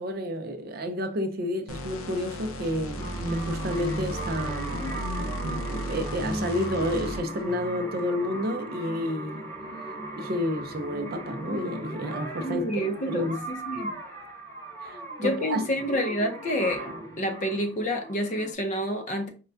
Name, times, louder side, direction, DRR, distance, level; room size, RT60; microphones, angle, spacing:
voice 1, 0.0-9.5 10.2-12.7 13.1-13.5 14.8-15.6, left 1 dB, 45° right, 0.4 m, -30 dB
sound 1, 1.7-7.4, equal, 85° left, 0.5 m, -35 dB
sound 2, 2.9-18.5, right 1 dB, 10° left, 1.0 m, -37 dB
voice 2, 12.4-14.0 15.2-16.8 17.2-19.3, equal, 35° left, 0.5 m, -28 dB
4.5 x 2.2 x 2.5 m
head